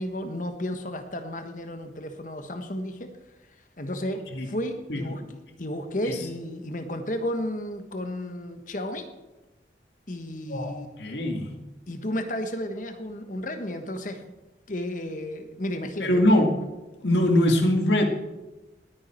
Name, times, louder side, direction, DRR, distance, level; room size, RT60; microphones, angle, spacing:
voice 1, 0.0-3.1 3.8-9.1 10.1-11.0 11.9-14.2 14.7-16.4, left 1 dB, 45° left, 7 dB, 1.3 m, -33 dB
voice 2, 10.5-11.6 16.0-16.5 17.0-18.1, left 1 dB, 80° left, 4 dB, 1.9 m, -22 dB
19.0 x 9.4 x 4.5 m, 1.1 s
head